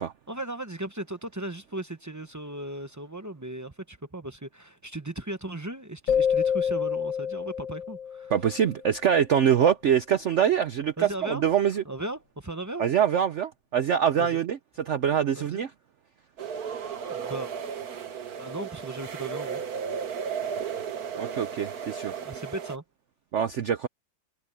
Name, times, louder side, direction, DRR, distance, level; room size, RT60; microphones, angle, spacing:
voice 1, 0.3-8.3 11.0-11.4 11.8-12.9 14.2-14.4 15.3-15.6 17.1-17.5 18.4-19.6 22.1-22.8, right 1 dB, 20° right, 0.5 m, -37 dB
sound 1, 6.1-8.7, left 7 dB, 50° left, 1.2 m, -27 dB
voice 2, 8.3-11.8 12.8-14.6 14.9-15.7 21.2-22.2 23.3-23.9, right 8 dB, 70° right, 0.6 m, -24 dB
sound 2, 16.4-22.8, right 7 dB, 55° right, 1.8 m, -34 dB
omnidirectional pair, 2.1 m